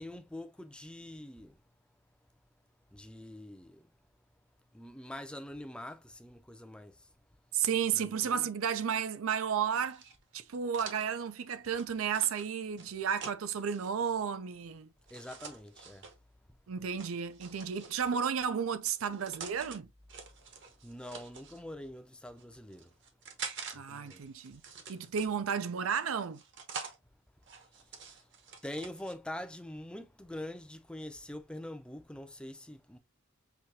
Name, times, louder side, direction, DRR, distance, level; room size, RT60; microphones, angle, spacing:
voice 1, 0.0-1.6 2.9-3.9 4.7-7.0 7.9-8.5 15.1-16.0 20.8-22.9 23.7-24.2 28.6-33.0, left 1 dB, 5° left, 0.5 m, -44 dB
voice 2, 7.5-10.0 10.3-14.9 16.7-19.9 23.7-24.6 24.9-26.4, right 7 dB, 80° right, 0.5 m, -33 dB
sound 1, 9.8-13.9 15.1-16.1 17.0-18.2 18.9-19.8 20.1-21.6 22.3-23.8 24.1-25.6 26.2-27.0 27.4-29.1, right 5 dB, 60° right, 1.0 m, -47 dB
6.0 x 2.8 x 2.7 m
head